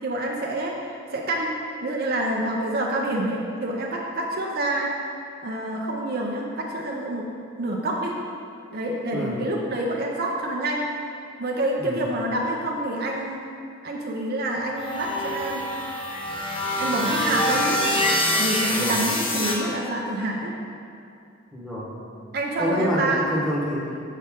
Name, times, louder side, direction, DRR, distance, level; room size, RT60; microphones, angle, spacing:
voice 1, 0.0-4.9 5.4-7.2 7.6-8.1 8.7-10.9 11.4-13.5 13.8-15.7 16.8-17.8 18.4-20.5 22.3-23.3, right 1 dB, 50° right, 0 dB, 0.6 m, -27 dB
voice 2, 9.1-9.4 11.8-12.0 18.7-19.0 21.5-21.9 22.6-24.0, equal, 5° left, -6 dB, 1.1 m, -27 dB
sound 1, 14.8-19.6, left 1 dB, 25° left, 0.7 m, -25 dB
7.4 x 5.4 x 3.6 m, 2.5 s
head